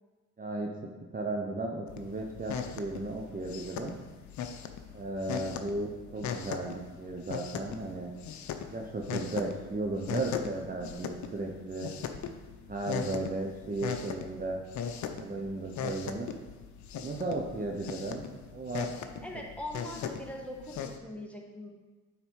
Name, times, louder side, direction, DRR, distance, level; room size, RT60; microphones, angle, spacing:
voice 1, 0.4-0.7 1.1-4.0 4.9-8.1 8.7-11.9 12.7-14.6 15.2-16.3 16.9-18.3 18.5-19.4, right 2 dB, 30° right, 0 dB, 0.9 m, -35 dB
sound 1, 1.9-21.0, left 7 dB, 70° left, 0.7 m, -39 dB
voice 2, 19.2-21.7, left 1 dB, 5° left, -1 dB, 1.3 m, -41 dB
8.9 x 3.9 x 4.7 m, 1.3 s
cardioid pair, 90°, 30 cm